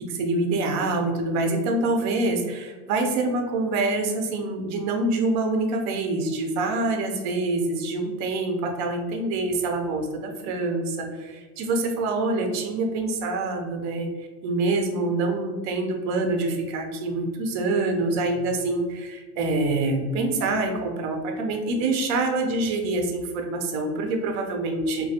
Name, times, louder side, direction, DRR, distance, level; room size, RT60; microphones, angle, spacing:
voice 1, 0.0-25.1, right 2 dB, 40° right, 3 dB, 0.5 m, -26 dB
3.1 x 2.2 x 2.8 m, 1.3 s
supercardioid pair, 125°, 46 cm